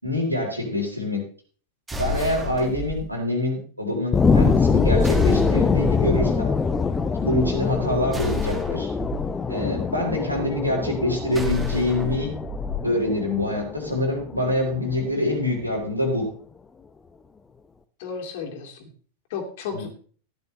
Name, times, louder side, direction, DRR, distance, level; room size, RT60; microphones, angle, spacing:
voice 1, 0.0-1.2 2.0-6.6 7.2-8.9 9.5-12.3 12.8-16.2 19.7-19.8, left 1 dB, 90° right, 0 dB, 3.9 m, -25 dB
sound 1, 1.9-3.0 5.0-6.0 8.1-9.2 11.3-12.8, left 3 dB, 10° right, 2.0 m, -30 dB
sound 2, 4.1-15.1 15.6-15.7, left 4 dB, 15° left, 0.8 m, -24 dB
voice 2, 10.1-10.4 18.0-18.9 19.3-19.9, left 6 dB, 50° left, 3 dB, 2.7 m, -34 dB
15.0 x 10.5 x 3.3 m, 0.43 s
figure-of-eight pair, 90°, 0 cm